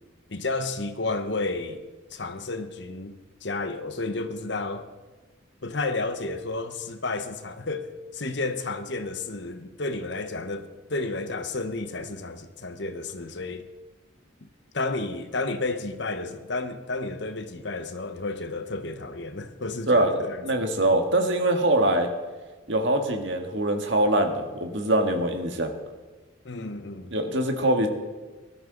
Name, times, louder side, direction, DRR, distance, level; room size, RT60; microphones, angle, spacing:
voice 1, 0.3-1.8 2.1-4.9 5.6-13.7 14.7-20.7 26.4-27.1, left 3 dB, 60° left, 1.1 m, -32 dB
voice 2, 19.9-20.2 20.4-22.1 22.7-25.7 27.1-27.9, right 1 dB, 65° right, 1.8 m, -23 dB
19.0 x 12.5 x 4.0 m
head